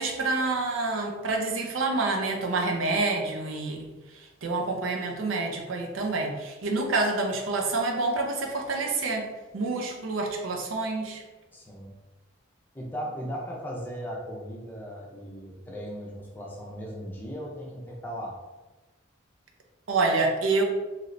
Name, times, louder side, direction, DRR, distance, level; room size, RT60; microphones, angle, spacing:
voice 1, 0.0-3.9 4.4-9.2 9.5-11.2 19.9-20.6, right 3 dB, 90° right, 2 dB, 0.6 m, -27 dB
voice 2, 11.5-11.9 12.7-18.4, equal, 10° left, -2 dB, 0.5 m, -37 dB
3.1 x 2.9 x 2.5 m, 1.2 s
head